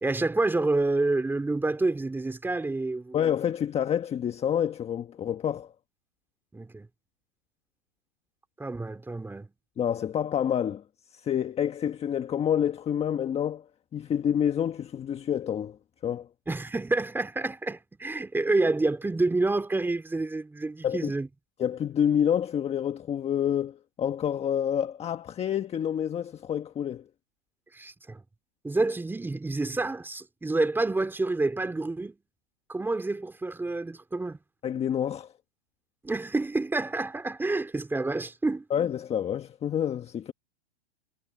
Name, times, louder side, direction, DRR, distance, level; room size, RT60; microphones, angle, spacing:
voice 1, 0.0-3.2 6.5-6.9 8.6-9.5 16.5-21.3 27.7-28.2 28.6-32.2 32.7-34.4 36.0-38.6, right 2 dB, 5° right, 3.2 m, -28 dB
voice 2, 3.1-5.7 9.8-10.8 11.1-13.7 13.9-15.8 16.0-16.3 20.8-21.1 21.6-27.1 34.6-35.3 38.7-40.3, left 9 dB, 20° left, 1.4 m, -28 dB
hypercardioid pair, 135°, 34 cm